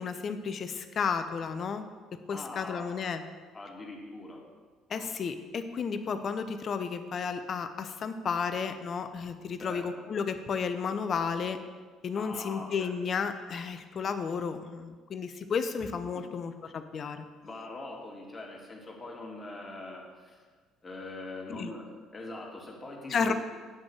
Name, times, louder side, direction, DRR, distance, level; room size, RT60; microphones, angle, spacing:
voice 1, 0.0-1.8 2.3-3.2 4.9-11.6 12.0-17.2 21.5-21.7 23.1-23.3, left 6 dB, 45° left, 9 dB, 0.7 m, -32 dB
voice 2, 2.3-3.0 3.5-4.4 4.9-5.1 9.6-9.8 12.2-12.9 16.1-16.3 17.4-20.4 20.8-23.3, left 2 dB, 25° left, -1 dB, 2.4 m, -42 dB
8.9 x 6.1 x 6.4 m, 1.5 s
figure-of-eight pair, 55°, 0 cm